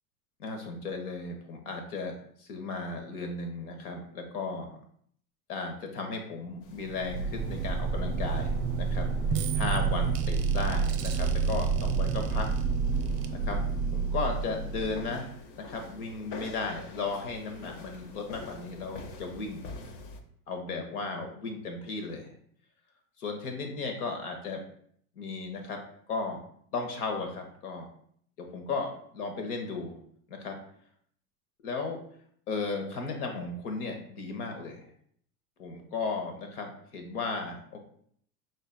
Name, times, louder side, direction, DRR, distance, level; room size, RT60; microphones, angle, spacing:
voice 1, 0.4-4.8 5.5-9.1 9.5-12.5 13.4-13.6 13.9-19.6 20.5-22.3 23.2-24.6 25.2-25.8 26.1-26.4 26.7-27.9 28.4-30.0 30.3-30.6 31.6-32.0 32.5-34.9 35.6-37.8, left 4 dB, 75° left, 4 dB, 1.2 m, -35 dB
sound 1, 6.6-20.2, left 3 dB, 45° left, 0.7 m, -47 dB
sound 2, 6.8-15.3, right 5 dB, 35° right, 0.5 m, -29 dB
5.4 x 3.9 x 2.2 m, 0.63 s
hypercardioid pair, 90°, 45 cm